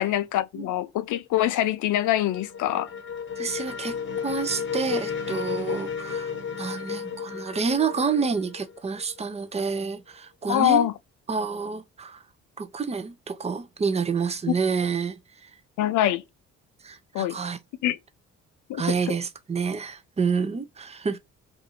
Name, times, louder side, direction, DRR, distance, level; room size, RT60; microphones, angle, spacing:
voice 1, 0.0-2.9 10.5-10.9 14.5-14.6 15.8-16.2 17.1-17.4 17.8-18.0 18.7-19.1, left 13 dB, 80° left, 0.5 m, -24 dB
sound 1, 1.8-9.3, left 7 dB, 40° left, 0.9 m, -33 dB
voice 2, 3.4-10.9 11.3-12.2 12.6-15.5 16.8-17.6 18.8-21.2, right 5 dB, 20° right, 0.5 m, -28 dB
2.6 x 2.5 x 4.2 m
cardioid pair, 90°, 30 cm